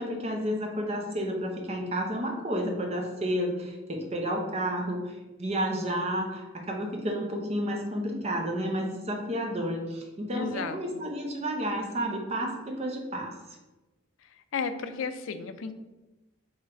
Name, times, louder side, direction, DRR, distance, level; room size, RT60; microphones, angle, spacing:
voice 1, 0.0-13.3, equal, 30° right, 1 dB, 0.7 m, -31 dB
voice 2, 10.3-10.8 14.5-15.7, left 5 dB, 80° left, 10 dB, 0.4 m, -33 dB
3.8 x 3.1 x 4.2 m, 1.1 s
head